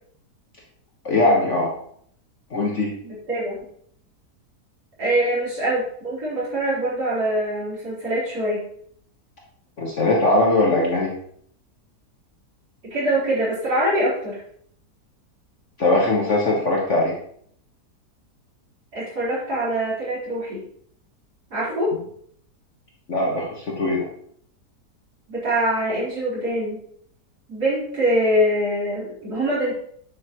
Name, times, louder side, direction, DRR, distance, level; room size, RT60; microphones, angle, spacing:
voice 1, 1.1-1.7 2.5-2.9 9.8-11.1 15.8-17.2 23.1-24.1, left 2 dB, 45° left, -2 dB, 1.6 m, -20 dB
voice 2, 3.0-3.6 5.0-8.7 12.8-14.4 18.9-20.6 21.5-21.9 25.3-26.8 27.5-29.7, right 1 dB, 65° right, -9 dB, 5.0 m, -24 dB
9.1 x 8.2 x 3.1 m, 0.63 s
omnidirectional pair, 1.8 m